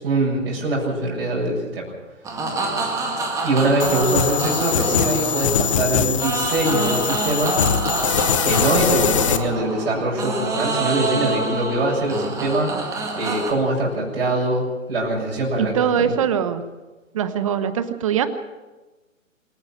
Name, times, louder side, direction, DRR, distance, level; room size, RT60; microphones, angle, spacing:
voice 1, 0.0-1.9 3.4-7.6 8.4-15.9, right 1 dB, 45° right, -2 dB, 7.5 m, -23 dB
sound 1, 2.2-13.5, right 3 dB, 10° right, 1.9 m, -27 dB
sound 2, 3.8-9.4, left 8 dB, 25° left, 0.8 m, -22 dB
voice 2, 15.6-16.6 17.1-18.3, right 8 dB, 25° right, 12 dB, 1.0 m, -22 dB
26.5 x 10.5 x 9.1 m, 1.2 s
figure-of-eight pair, 145°, 41 cm